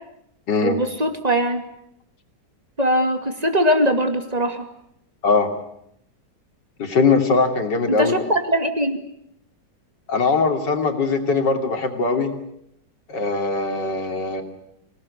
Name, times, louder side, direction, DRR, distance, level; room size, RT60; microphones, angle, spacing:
voice 1, 0.6-1.6 2.8-4.6 7.9-9.0, equal, 20° right, 6 dB, 2.6 m, -21 dB
voice 2, 6.8-8.1 10.1-12.3 13.1-14.4, left 4 dB, 80° left, 5 dB, 3.5 m, -21 dB
27.0 x 18.5 x 9.9 m, 0.78 s
omnidirectional pair, 1.9 m